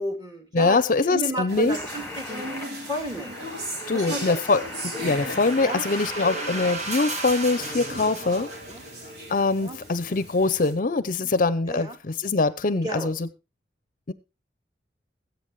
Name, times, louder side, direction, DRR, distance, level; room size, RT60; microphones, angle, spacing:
voice 1, 0.0-0.8 1.1-2.0 2.3-2.4 2.9-3.4 3.9-4.2 5.6-5.9 8.7-8.8 9.6-9.8 11.7-11.9 12.8-13.1, right 1 dB, 25° right, 2 dB, 2.9 m, -32 dB
voice 2, 0.5-1.8 3.9-4.6 5.0-8.5 9.3-13.3 14.1-14.2, left 3 dB, 50° left, 15 dB, 0.6 m, -23 dB
sound 1, 1.5-10.7, equal, 65° right, 3.6 m, -37 dB
sound 2, 1.7-7.8, left 1 dB, 10° left, 1.6 m, -39 dB
sound 3, 3.8-9.1, right 3 dB, 40° right, 1.6 m, -36 dB
20.5 x 8.1 x 3.1 m, 0.28 s
head